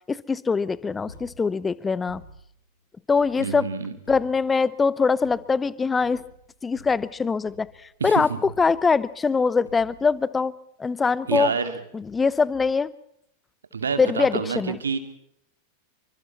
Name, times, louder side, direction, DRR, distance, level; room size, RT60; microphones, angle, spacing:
voice 1, 0.1-2.2 3.1-3.7 4.1-6.2 6.6-7.7 8.0-8.3 8.6-10.5 10.8-11.5 11.9-12.9 14.0-14.8, left 5 dB, 15° left, 20 dB, 0.8 m, -23 dB
sound 1, 1.1-1.7 2.1-2.6 3.1-3.5 4.0-4.6 5.2-5.7 6.0-7.9 8.4-9.2 9.7-10.2, left 2 dB, 75° left, 4.7 m, -49 dB
voice 2, 3.4-3.9 8.0-8.4 11.3-11.8 13.7-15.0, right 5 dB, 70° right, 9 dB, 2.3 m, -27 dB
27.5 x 25.0 x 4.2 m, 0.72 s
figure-of-eight pair, 90°, 0 cm